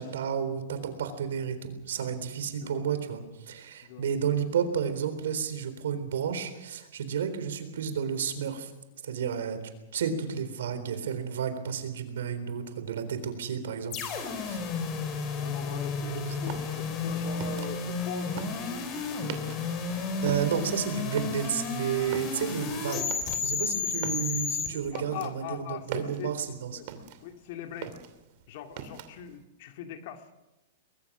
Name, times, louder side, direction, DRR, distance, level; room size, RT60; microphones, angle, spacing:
voice 1, 0.0-8.7 9.0-9.6 9.9-14.6 16.3-16.4 19.9-23.1 23.4-26.8, right 7 dB, 80° right, 10 dB, 3.9 m, -31 dB
sound 1, 13.9-24.7, left 4 dB, 30° left, 4.3 m, -32 dB
voice 2, 15.4-19.2 22.4-22.5 23.8-23.9 24.7-26.3 26.7-26.9 27.2-28.0 28.5-30.2, left 9 dB, 55° left, 6 dB, 2.4 m, -41 dB
sound 2, 16.4-19.9 20.1-27.4 27.7-29.3, right 8 dB, 50° right, 2.6 m, -41 dB
23.0 x 22.0 x 6.2 m, 1.0 s
hypercardioid pair, 145°, 0 cm